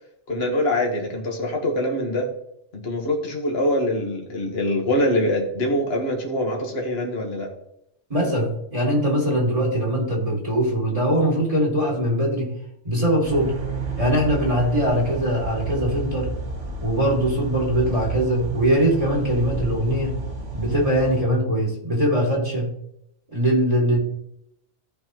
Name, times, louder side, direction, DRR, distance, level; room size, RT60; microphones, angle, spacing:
voice 1, 0.3-2.3 2.7-7.5, left 1 dB, 60° left, 1 dB, 1.7 m, -24 dB
voice 2, 8.1-12.5 12.8-13.5 14.0-16.3 16.8-20.2 20.5-22.7 23.3-24.0, equal, 30° right, -2 dB, 2.4 m, -21 dB
sound 1, 13.2-21.2, right 4 dB, 80° right, 1.8 m, -31 dB
15.0 x 5.3 x 3.0 m, 0.75 s
omnidirectional pair, 1.2 m